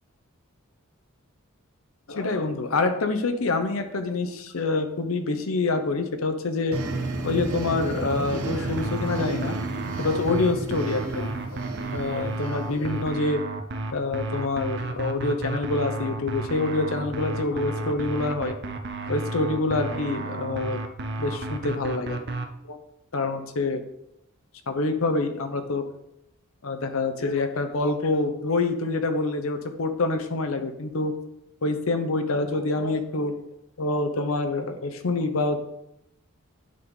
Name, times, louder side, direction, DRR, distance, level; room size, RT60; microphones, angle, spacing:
voice 1, 2.1-6.8 7.2-9.5 10.0-11.4 11.9-13.4 13.9-18.6 19.1-20.8 21.2-22.2 22.7-22.8 23.1-23.8 24.7-25.8 26.6-31.1 31.6-33.3 33.8-35.6, left 3 dB, 65° left, 7 dB, 0.8 m, -26 dB
sound 1, 6.7-13.1, right 2 dB, 85° right, 1.0 m, -32 dB
sound 2, 8.8-22.5, right 2 dB, 50° right, 0.6 m, -32 dB
9.6 x 3.7 x 3.9 m, 0.82 s
head